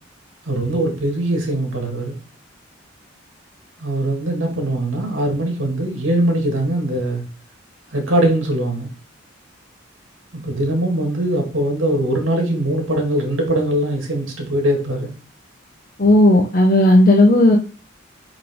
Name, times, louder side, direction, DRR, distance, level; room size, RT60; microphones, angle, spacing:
voice 1, 0.5-2.2 3.8-7.2 7.9-8.9 10.3-15.1, right 1 dB, 85° right, 1.9 m, -21 dB
voice 2, 16.0-17.6, left 1 dB, 45° left, 0.8 m, -12 dB
5.5 x 4.9 x 3.5 m
head